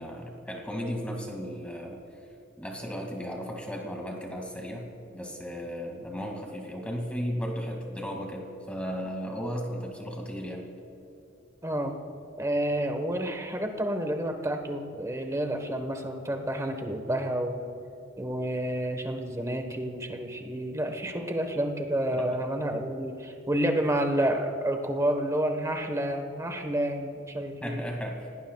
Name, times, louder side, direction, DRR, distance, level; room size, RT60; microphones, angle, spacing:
voice 1, 0.0-2.0 2.6-10.7 21.1-21.3 22.1-22.3 27.6-28.3, equal, 5° left, 1 dB, 2.3 m, -35 dB
voice 2, 11.6-11.9 12.4-17.6 18.2-27.8, right 1 dB, 15° right, 5 dB, 1.3 m, -29 dB
29.0 x 18.0 x 2.4 m, 2.8 s
head